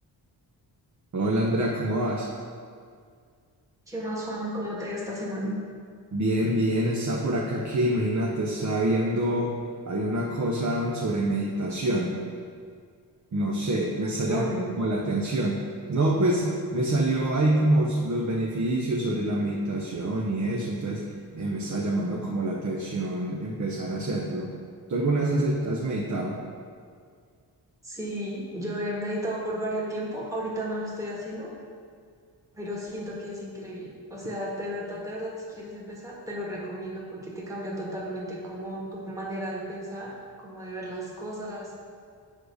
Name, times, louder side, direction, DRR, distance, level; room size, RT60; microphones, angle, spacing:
voice 1, 1.1-2.3 6.1-9.5 9.9-12.2 13.3-14.5 14.8-15.6 15.9-21.0 21.3-24.5 24.9-26.4, right 1 dB, 45° right, -2 dB, 0.9 m, -26 dB
voice 2, 3.9-5.5 14.2-14.7 27.8-31.5 32.5-41.7, equal, 10° right, -5 dB, 1.5 m, -34 dB
7.7 x 4.9 x 6.5 m, 2.1 s
wide cardioid pair, 130°, 41 cm